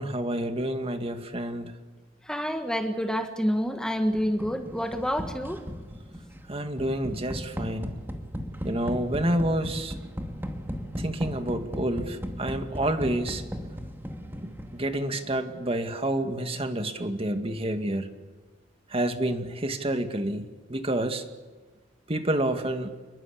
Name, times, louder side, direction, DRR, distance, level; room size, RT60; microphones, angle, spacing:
voice 1, 0.0-1.7 6.5-7.9 8.6-10.0 11.0-13.4 14.4-18.1 18.9-21.2 22.1-22.9, right 1 dB, 30° right, 7 dB, 2.1 m, -29 dB
voice 2, 2.2-5.6 10.7-10.8, equal, 5° left, 6 dB, 1.6 m, -28 dB
sound 1, 4.1-15.0, equal, 10° right, 2.4 m, -37 dB
28.5 x 22.5 x 8.7 m, 1.3 s
head